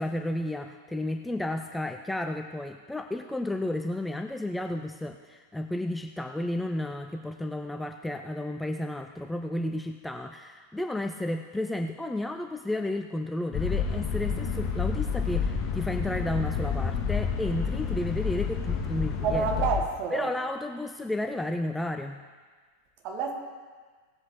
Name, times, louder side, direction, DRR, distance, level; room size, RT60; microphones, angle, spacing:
voice 1, 0.0-19.5 20.1-22.2, left 1 dB, 5° left, 5 dB, 0.5 m, -32 dB
sound 1, 13.5-19.8, left 6 dB, 40° left, 1.9 m, -29 dB
voice 2, 19.2-20.3 23.0-23.3, right 5 dB, 40° right, 2 dB, 1.8 m, -28 dB
18.0 x 7.9 x 3.7 m, 1.5 s
figure-of-eight pair, 90°, 0 cm